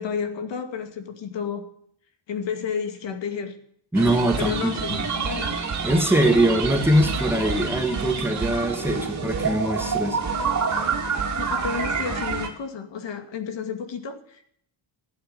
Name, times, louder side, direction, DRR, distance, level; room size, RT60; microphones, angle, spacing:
voice 1, 0.0-1.7 2.3-3.6 4.4-5.6 11.4-14.5, left 6 dB, 65° left, 7 dB, 2.5 m, -31 dB
voice 2, 3.9-5.0 5.8-10.2, right 1 dB, 5° right, 6 dB, 1.5 m, -22 dB
sound 1, 3.9-12.5, right 5 dB, 35° right, 2.8 m, -27 dB
15.5 x 9.1 x 8.7 m, 0.65 s
wide cardioid pair, 175°, 48 cm